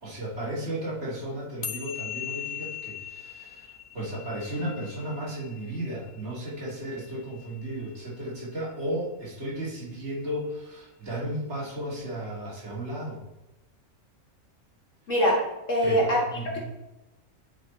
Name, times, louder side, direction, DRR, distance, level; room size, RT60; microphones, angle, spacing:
voice 1, 0.0-13.2 15.8-16.6, right 1 dB, 60° right, -5 dB, 2.4 m, -34 dB
sound 1, 1.6-8.2, left 10 dB, 55° left, 0.5 m, -40 dB
voice 2, 15.1-15.4 15.7-16.2, equal, 75° left, -2 dB, 2.0 m, -22 dB
9.9 x 4.1 x 4.1 m, 0.98 s
omnidirectional pair, 1.4 m